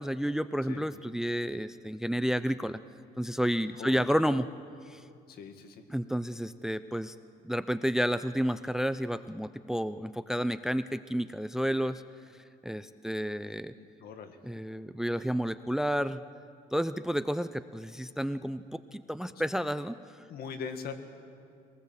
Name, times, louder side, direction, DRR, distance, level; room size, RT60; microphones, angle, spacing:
voice 1, 0.0-2.8 3.2-4.5 4.9-5.0 5.9-7.2 7.4-12.0 12.6-13.7 14.4-16.2 16.7-20.2, equal, 5° right, 14 dB, 0.4 m, -31 dB
voice 2, 5.3-5.8 13.7-14.4 20.3-20.9, left 6 dB, 65° left, 7 dB, 2.0 m, -41 dB
24.0 x 18.5 x 7.5 m, 2.4 s
cardioid pair, 110°, 17 cm